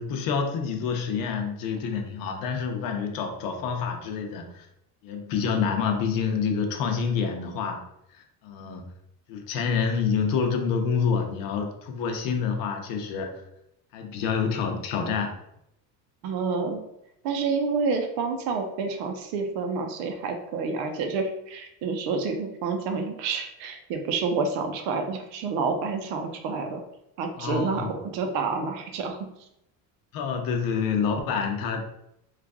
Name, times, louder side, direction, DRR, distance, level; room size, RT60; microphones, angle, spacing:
voice 1, 0.0-4.7 5.0-7.8 8.1-8.9 9.3-13.4 13.9-15.4 27.4-27.9 30.1-31.8, left 6 dB, 65° left, 4 dB, 0.7 m, -27 dB
voice 2, 16.2-16.8 17.2-26.8 27.2-29.2, right 4 dB, 90° right, 4 dB, 0.7 m, -28 dB
3.2 x 2.4 x 3.5 m, 0.79 s
cardioid pair, 150°, 38 cm